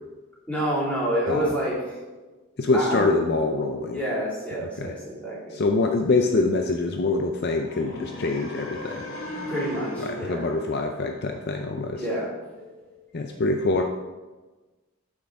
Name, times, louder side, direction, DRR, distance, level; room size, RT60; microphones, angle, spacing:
voice 1, 0.5-2.0 2.7-3.1 3.8-5.4 9.5-10.4 10.7-10.8 11.9-12.3 12.6-12.9, equal, 5° left, -9 dB, 3.2 m, -28 dB
voice 2, 2.6-4.0 4.6-4.9 5.5-9.0 10.0-12.0 13.1-13.8, left 3 dB, 50° left, 4 dB, 0.5 m, -25 dB
sound 1, 7.6-11.7, left 1 dB, 75° left, 1.9 m, -37 dB
8.9 x 6.3 x 4.7 m, 1.2 s
head